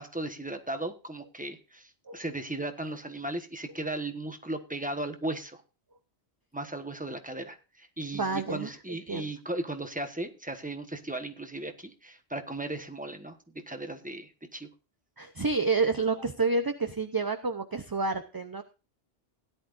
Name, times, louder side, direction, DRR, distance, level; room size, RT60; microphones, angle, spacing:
voice 1, 0.0-5.6 6.5-13.4 13.7-14.7, right 2 dB, 10° right, 7 dB, 1.2 m, -36 dB
voice 2, 8.1-8.7 9.1-9.3 15.2-18.6, right 4 dB, 25° right, 8 dB, 0.6 m, -29 dB
17.0 x 11.0 x 2.5 m, 0.32 s
omnidirectional pair, 1.1 m